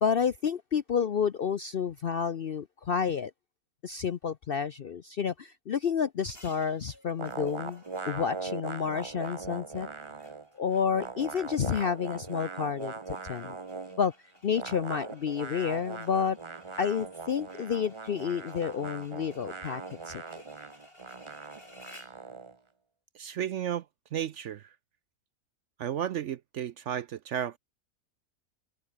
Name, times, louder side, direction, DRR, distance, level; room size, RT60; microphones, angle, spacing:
voice 1, 0.0-3.3 3.8-9.9 10.6-13.6 14.0-14.1 14.4-16.4 16.8-20.2, left 7 dB, 55° left, 0.6 m, -30 dB
sound 1, 6.2-22.2, left 1 dB, 35° left, 6.1 m, -58 dB
sound 2, 7.2-10.5 10.7-14.0 14.5-22.6, right 4 dB, 25° right, 0.8 m, -40 dB
voice 2, 23.1-23.9 24.1-24.7 25.8-27.6, right 10 dB, 65° right, 0.8 m, -33 dB
omnidirectional pair, 1.6 m